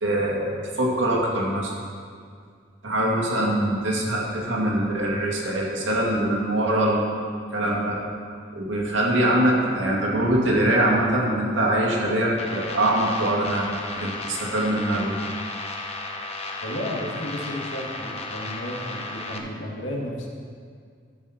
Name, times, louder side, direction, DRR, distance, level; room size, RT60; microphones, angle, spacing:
voice 1, 0.0-1.7 2.8-7.1 7.5-8.0 8.5-15.2, right 1 dB, 85° right, -3 dB, 2.1 m, -23 dB
sound 1, 12.4-19.4, left 2 dB, 30° left, 0.7 m, -34 dB
voice 2, 16.6-20.3, equal, 85° left, -1 dB, 1.6 m, -33 dB
12.5 x 7.3 x 4.3 m, 2.1 s
head